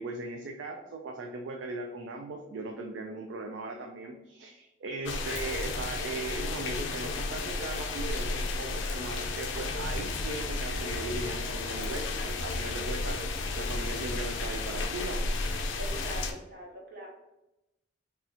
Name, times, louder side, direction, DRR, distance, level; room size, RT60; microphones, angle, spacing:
voice 1, 0.0-15.2, right 2 dB, 70° right, 2 dB, 0.3 m, -38 dB
sound 1, 5.0-16.3, left 3 dB, 75° left, 0.4 m, -33 dB
voice 2, 15.8-17.1, right 1 dB, 50° right, -2 dB, 0.9 m, -43 dB
2.7 x 2.4 x 4.1 m, 0.94 s
head